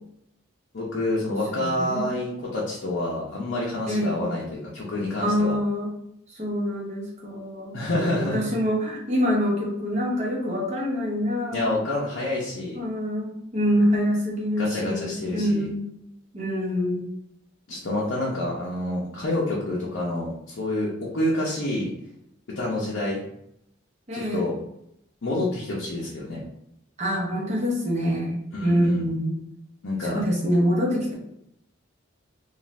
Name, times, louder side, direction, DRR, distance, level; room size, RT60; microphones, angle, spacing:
voice 1, 0.7-5.6 7.7-8.4 11.5-12.8 14.6-15.6 17.7-21.9 22.6-23.2 24.1-24.5 25.2-26.4 28.5-29.0 29.8-30.2, left 1 dB, 60° left, -5 dB, 0.6 m, -28 dB
voice 2, 1.5-2.3 3.9-4.2 5.2-5.9 6.3-11.7 12.7-15.9 16.3-17.1 24.1-24.5 27.0-29.3 30.0-31.1, equal, 35° right, -3 dB, 0.8 m, -25 dB
2.5 x 2.4 x 3.1 m, 0.76 s
head